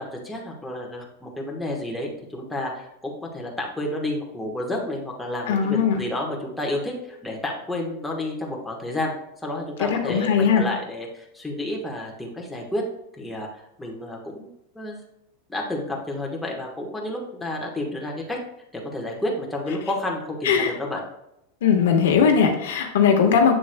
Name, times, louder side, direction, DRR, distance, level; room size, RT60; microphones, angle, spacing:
voice 1, 0.0-9.1 9.4-12.8 13.2-13.5 13.8-15.0 15.5-18.4 18.7-21.0, left 1 dB, 5° left, -2 dB, 1.2 m, -30 dB
voice 2, 5.5-6.0 9.8-10.7 20.4-20.7 21.6-23.5, left 6 dB, 85° left, 4 dB, 1.3 m, -19 dB
7.7 x 7.1 x 2.2 m, 0.82 s
supercardioid pair, 150°, 0 cm